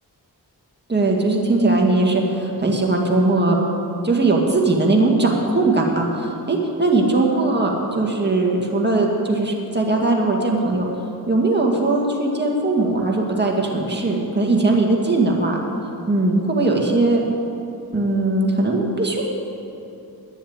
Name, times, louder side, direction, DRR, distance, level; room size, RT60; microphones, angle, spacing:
voice 1, 0.9-3.6 4.0-10.9 11.3-15.6 16.1-17.2 17.9-19.2, right 2 dB, 25° right, -1 dB, 2.0 m, -19 dB
10.5 x 7.2 x 8.9 m, 2.9 s
cardioid pair, 50°, 40 cm